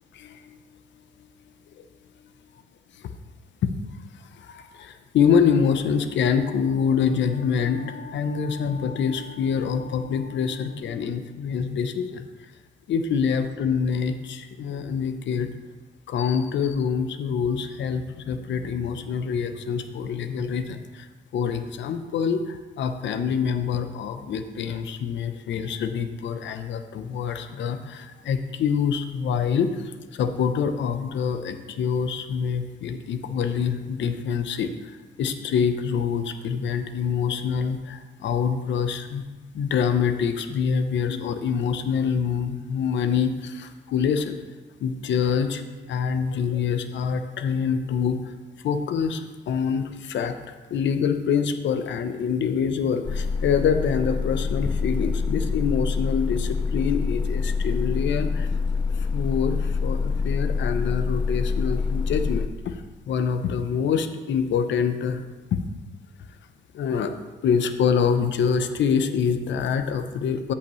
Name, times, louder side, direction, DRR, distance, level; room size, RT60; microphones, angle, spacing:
voice 1, 0.2-0.6 3.6-3.7 4.4-12.3 12.9-15.5 16.1-21.1 21.3-39.2 39.5-44.4 44.8-45.6 45.9-48.3 48.6-58.5 59.0-62.8 63.1-65.2 65.5-65.6 66.7-67.1 67.4-70.5, left 6 dB, 65° left, 9 dB, 0.7 m, -25 dB
sound 1, 53.0-62.5, left 5 dB, 25° left, 0.4 m, -26 dB
13.0 x 5.7 x 3.1 m, 1.3 s
cardioid pair, 90°, 20 cm